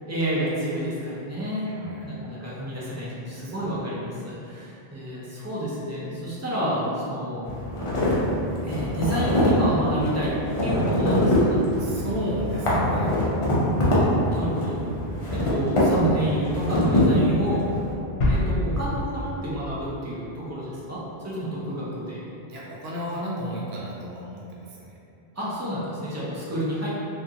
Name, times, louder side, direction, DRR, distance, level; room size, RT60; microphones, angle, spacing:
voice 1, 0.0-7.4 8.6-10.3 10.6-11.6 14.3-14.8 15.3-17.6 18.2-22.2 25.3-26.9, right 1 dB, 30° right, -8 dB, 0.3 m, -29 dB
voice 2, 1.7-2.1 3.4-3.8 11.8-13.2 22.5-25.0, equal, 75° right, -5 dB, 0.8 m, -33 dB
sound 1, 7.4-17.9, equal, 40° left, 0.5 m, -23 dB
sound 2, 18.2-20.9, left 1 dB, 90° left, 0.8 m, -27 dB
2.4 x 2.4 x 2.7 m, 2.7 s
omnidirectional pair, 1.0 m